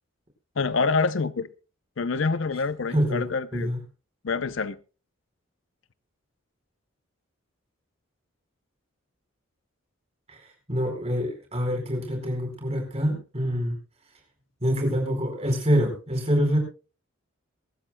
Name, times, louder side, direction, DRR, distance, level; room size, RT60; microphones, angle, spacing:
voice 1, 0.6-1.5 2.0-3.7 4.2-4.8, left 4 dB, 65° left, 0.6 m, -26 dB
voice 2, 2.9-3.2 3.5-3.8 10.3-13.8 14.6-16.6, equal, 30° right, 4.5 m, -26 dB
23.0 x 13.0 x 2.2 m
head